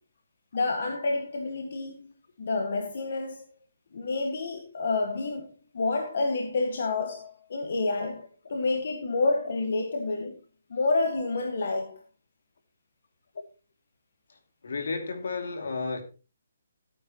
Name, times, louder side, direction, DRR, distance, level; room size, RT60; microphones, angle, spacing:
voice 1, 0.5-2.1 2.4-3.4 3.9-8.2 8.5-10.4 10.7-12.0, left 3 dB, 55° left, 1.8 m, -29 dB
voice 2, 14.6-16.0, left 4 dB, 70° left, 2.8 m, -32 dB
15.5 x 9.3 x 3.1 m
hypercardioid pair, 170°, 0 cm